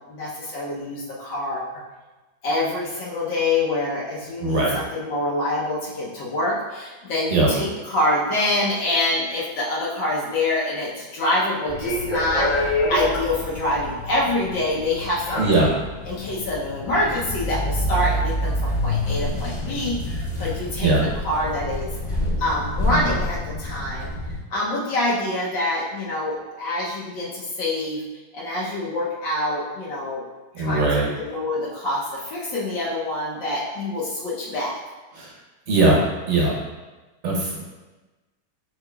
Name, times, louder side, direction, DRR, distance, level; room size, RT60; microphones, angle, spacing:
voice 1, 0.1-1.7 2.4-15.7 16.1-20.9 21.2-21.9 22.4-24.1 24.5-28.0 28.3-30.2 30.6-30.9 31.2-34.7, left 2 dB, 85° left, -6 dB, 1.5 m, -26 dB
voice 2, 4.4-4.7 7.3-7.5 15.4-15.7 20.8-21.1 30.5-31.1 35.2-35.3 35.7-36.0 36.3-36.5 37.2-37.6, right 2 dB, 55° right, -2 dB, 0.8 m, -20 dB
sound 1, 11.7-24.4, left 1 dB, 25° left, 1.6 m, -27 dB
4.9 x 4.7 x 2.3 m, 1.2 s
omnidirectional pair, 1.9 m